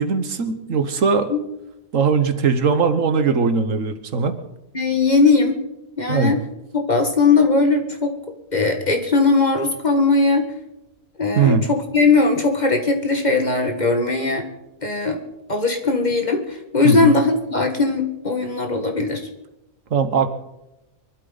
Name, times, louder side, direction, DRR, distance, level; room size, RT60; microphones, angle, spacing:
voice 1, 0.0-1.3 1.9-4.4 6.1-6.3 11.4-11.6 16.8-17.1 19.9-20.3, right 5 dB, 70° right, 9 dB, 1.6 m, -19 dB
voice 2, 4.7-5.6 6.0-6.4 6.7-8.2 8.5-10.5 11.2-14.5 14.8-15.2 15.5-19.3, left 3 dB, 35° left, 4 dB, 1.8 m, -19 dB
24.0 x 12.5 x 4.0 m, 0.91 s
omnidirectional pair, 1.4 m